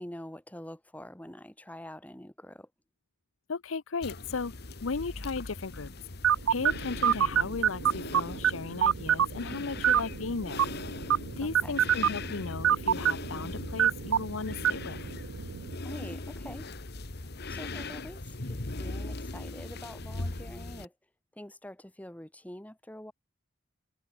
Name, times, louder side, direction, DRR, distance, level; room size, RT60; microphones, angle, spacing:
voice 1, 0.0-2.7 11.6-11.7 15.8-16.7 17.2-20.9 21.3-23.1, left 1 dB, 10° left, 1.7 m, -45 dB
voice 2, 3.5-4.5 4.8-5.9 6.5-10.7 11.4-15.0, left 4 dB, 85° left, 0.7 m, -36 dB
sound 1, 4.0-20.8, left 2 dB, 55° left, 1.6 m, -40 dB
sound 2, 6.2-15.8, right 9 dB, 90° right, 0.4 m, -28 dB
head